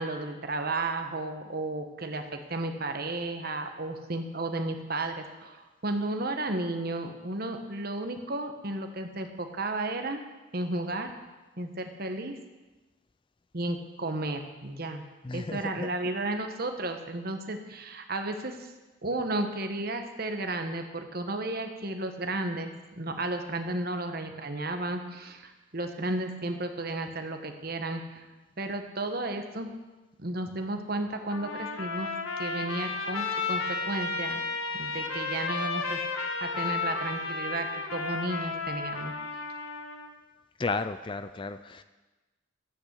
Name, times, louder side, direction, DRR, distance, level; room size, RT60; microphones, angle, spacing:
voice 1, 0.0-10.2 10.5-11.1 11.6-12.4 13.5-15.0 15.3-18.7 19.0-28.2 28.6-29.7 30.2-32.1 32.4-34.4 34.7-36.0 36.4-39.1, right 2 dB, 45° right, 6 dB, 1.4 m, -33 dB
voice 2, 15.2-15.9 40.6-41.8, left 3 dB, 25° left, 11 dB, 0.4 m, -33 dB
Trumpet, 31.3-40.1, left 4 dB, 90° left, 1.8 m, -33 dB
13.5 x 9.1 x 8.3 m, 1.2 s
head